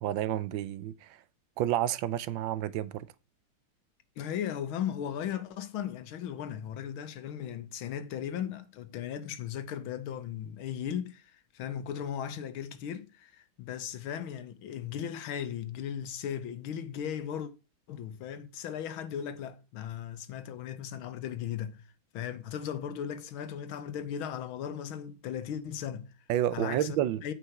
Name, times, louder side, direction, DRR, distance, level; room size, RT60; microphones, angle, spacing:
voice 1, 0.0-1.2 1.6-3.1 26.3-27.3, right 12 dB, 75° right, 1.3 m, -30 dB
voice 2, 4.2-17.5 17.9-21.8 22.1-26.1 26.5-27.3, left 9 dB, 85° left, 1.7 m, -37 dB
8.8 x 4.8 x 5.7 m
omnidirectional pair, 2.2 m